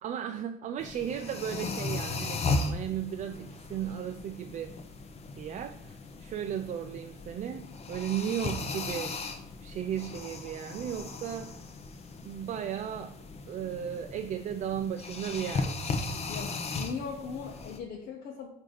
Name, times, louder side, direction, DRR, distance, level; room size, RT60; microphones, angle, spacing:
voice 1, 0.0-4.8 5.3-9.2 9.6-11.6 12.2-13.2 13.5-15.8, right 9 dB, 45° right, 6 dB, 0.4 m, -35 dB
sound 1, 0.8-17.8, left 3 dB, 40° left, 0.7 m, -37 dB
voice 2, 16.3-18.5, left 6 dB, 65° left, 0 dB, 0.8 m, -39 dB
7.7 x 2.7 x 5.0 m, 0.75 s
cardioid pair, 110°, 17 cm